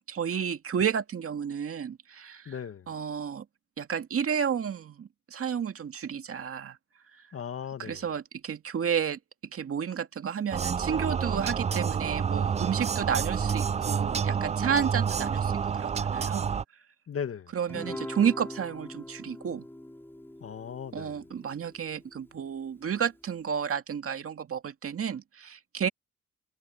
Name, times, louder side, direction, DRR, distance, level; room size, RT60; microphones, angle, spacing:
voice 1, 0.1-2.6 2.9-3.5 3.8-6.8 7.1-7.2 7.8-9.2 9.5-16.5 17.5-19.6 20.9-25.9, right 7 dB, 50° right, 2.1 m, -31 dB
voice 2, 2.5-2.9 7.3-8.0 17.1-17.5 20.4-21.2, left 7 dB, 50° left, 2.0 m, -37 dB
sound 1, 10.5-16.6, right 6 dB, 25° right, 0.4 m, -29 dB
Guitar, 17.7-22.3, left 1 dB, 5° left, 5.9 m, -42 dB
cardioid pair, 90°, 30 cm